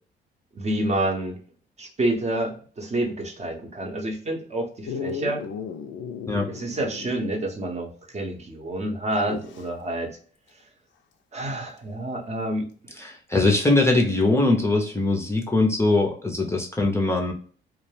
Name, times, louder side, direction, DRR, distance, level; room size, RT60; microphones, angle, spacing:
voice 1, 0.5-1.4 1.8-5.4 6.5-10.2 11.3-12.7, right 1 dB, 35° right, 2 dB, 0.7 m, -28 dB
Dog, 4.9-7.6 7.9-8.0 9.1-9.7 11.8-11.9, left 6 dB, 75° left, 0.4 m, -35 dB
voice 2, 13.0-17.3, left 2 dB, 15° left, 0 dB, 0.5 m, -21 dB
2.3 x 2.1 x 3.1 m, 0.43 s
cardioid pair, 90°, 20 cm